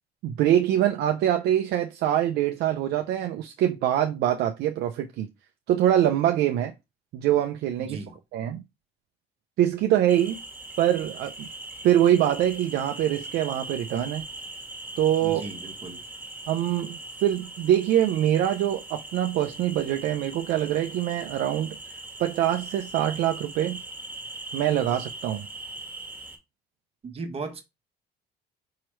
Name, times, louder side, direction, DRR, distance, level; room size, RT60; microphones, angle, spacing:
voice 1, 0.2-5.3 5.7-6.7 7.1-8.0 8.3-8.6 9.6-10.4 10.8-11.5 11.8-14.2 15.0-15.4 16.5-21.8 22.2-23.8 24.5-25.4, right 11 dB, 75° right, 0.5 m, -24 dB
voice 2, 7.8-8.2 15.2-16.0 27.0-27.6, right 3 dB, 35° right, 1.2 m, -36 dB
sound 1, 10.1-26.4, right 2 dB, 10° right, 1.5 m, -40 dB
4.7 x 3.0 x 3.1 m
cardioid pair, 110°, 17 cm